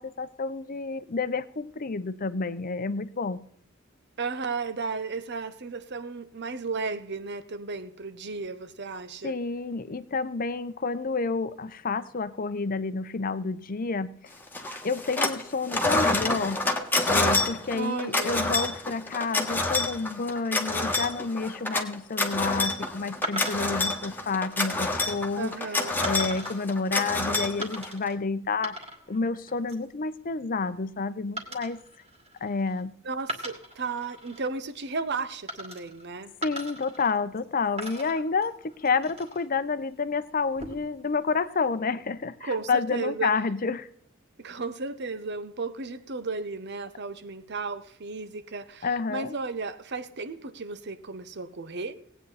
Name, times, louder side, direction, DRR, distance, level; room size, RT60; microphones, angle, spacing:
voice 1, 0.0-3.4 9.2-14.1 14.8-16.6 17.1-25.5 26.0-28.8 29.1-31.8 32.4-32.9 36.4-43.9 48.8-49.3, left 4 dB, 45° left, 0.7 m, -29 dB
voice 2, 4.2-9.4 17.7-18.6 25.4-26.0 33.0-36.3 42.4-43.4 44.4-51.9, right 4 dB, 55° right, 0.9 m, -34 dB
sound 1, 14.5-15.4 15.7-28.1, left 2 dB, 10° left, 1.5 m, -27 dB
sound 2, 23.2-23.9 24.6-24.9 26.0-26.6 27.6-28.2 28.5-29.2 29.5-29.9 31.4-32.8 33.2-34.4 35.5-36.1 36.4-37.4 37.8-39.5 40.4-41.0, right 1 dB, 30° right, 2.4 m, -39 dB
18.5 x 9.0 x 4.1 m
head